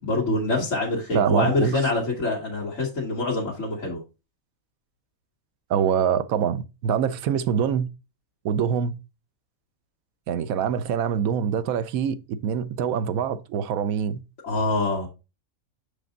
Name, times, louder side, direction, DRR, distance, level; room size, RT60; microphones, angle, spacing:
voice 1, 0.0-4.0 14.4-15.1, left 2 dB, 60° left, 2.0 m, -25 dB
voice 2, 1.1-1.8 5.7-7.9 8.4-8.9 10.3-14.2, right 8 dB, 80° right, 1.0 m, -24 dB
6.2 x 5.1 x 3.8 m
omnidirectional pair, 1.5 m